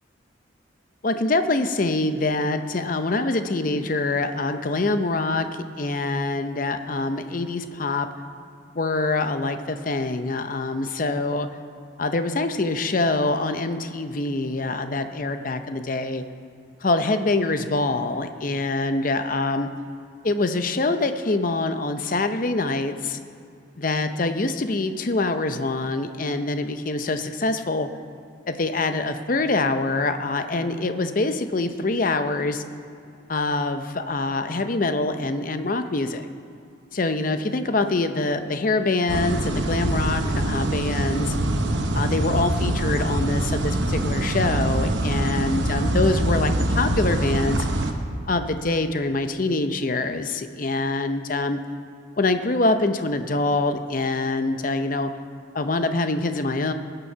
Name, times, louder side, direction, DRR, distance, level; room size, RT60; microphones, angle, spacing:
voice 1, 1.0-8.1 8.7-11.5 12.0-16.2 16.8-19.7 20.2-23.2 23.8-27.9 28.5-32.6 33.3-36.3 36.9-41.3 41.9-47.7 48.3-51.6 52.2-55.1 55.5-56.7, left 2 dB, 45° left, 9 dB, 0.6 m, -25 dB
sound 1, 39.1-47.9, right 1 dB, 65° right, 1.0 m, -24 dB
19.5 x 6.9 x 5.6 m, 2.5 s
head